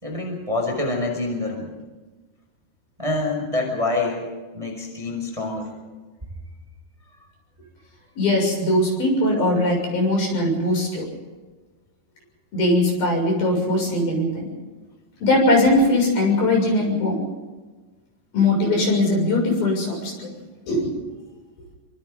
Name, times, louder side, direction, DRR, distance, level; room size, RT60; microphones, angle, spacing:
voice 1, 0.0-1.7 3.0-4.3 4.5-5.7, left 2 dB, 5° right, 1 dB, 5.0 m, -26 dB
voice 2, 8.2-11.1 12.5-14.5 15.2-17.2 18.3-20.3 20.7-20.9, left 1 dB, 50° left, 0 dB, 8.7 m, -20 dB
29.0 x 25.5 x 3.9 m, 1.3 s
omnidirectional pair, 5.3 m